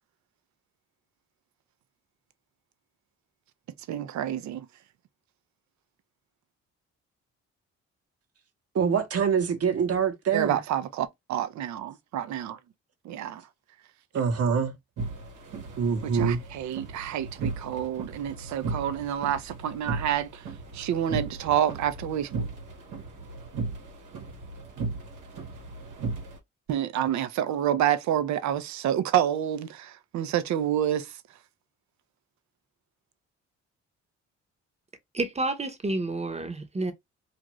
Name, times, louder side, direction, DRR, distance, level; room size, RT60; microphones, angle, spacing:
voice 1, 3.9-4.7 10.3-12.6 13.0-13.4 16.0-20.4 20.7-22.5 26.7-31.1, right 10 dB, 70° right, 0.6 m, -28 dB
voice 2, 8.7-10.6 14.1-14.7 15.8-16.4, right 6 dB, 50° right, 1.0 m, -25 dB
sound 1, 15.0-26.4, right 4 dB, 85° right, 1.1 m, -36 dB
voice 3, 35.1-36.9, right 2 dB, 20° right, 0.8 m, -29 dB
2.5 x 2.5 x 3.0 m
supercardioid pair, 70°, 30 cm